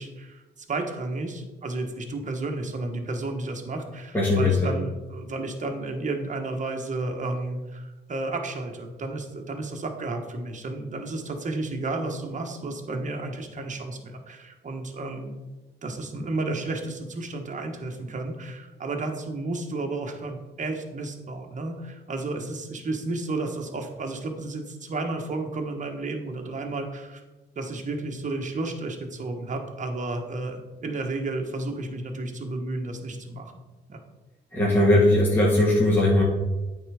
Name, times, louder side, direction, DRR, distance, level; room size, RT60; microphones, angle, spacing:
voice 1, 0.0-15.3 15.8-27.2 27.5-33.5 33.9-34.0, right 2 dB, 40° right, 3 dB, 1.3 m, -32 dB
voice 2, 4.1-4.7 34.5-36.2, left 1 dB, 10° left, -5 dB, 1.7 m, -19 dB
8.8 x 3.9 x 4.9 m, 1.1 s
cardioid pair, 90°, 20 cm